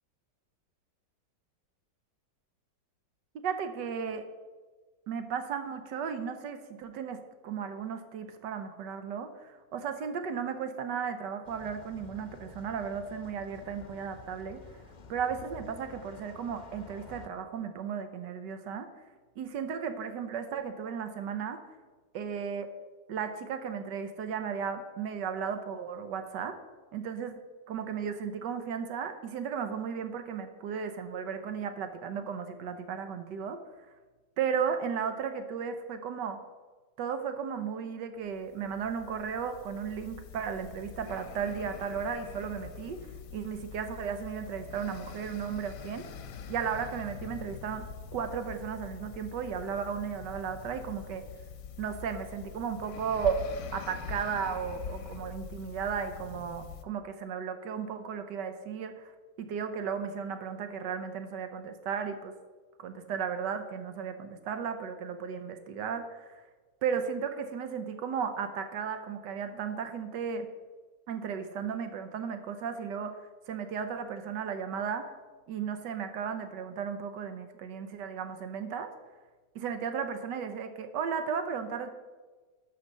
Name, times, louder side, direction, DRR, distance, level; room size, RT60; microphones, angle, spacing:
voice 1, 3.3-4.3 5.1-14.6 15.1-18.9 19.4-21.6 22.1-22.7 23.1-26.6 26.9-27.4 27.7-33.9 34.4-36.4 37.0-46.1 46.5-47.9 48.1-51.2 51.8-53.4 53.7-59.1 59.4-62.3 62.8-66.4 66.8-70.5 71.1-73.2 73.5-75.1 75.5-78.9 79.5-81.9, right 7 dB, 85° right, 9 dB, 1.5 m, -35 dB
sound 1, 11.4-17.3, left 5 dB, 40° left, 0.7 m, -50 dB
sound 2, 38.3-56.8, left 6 dB, 60° left, 1.1 m, -44 dB
12.5 x 5.7 x 6.6 m, 1.3 s
omnidirectional pair, 1.8 m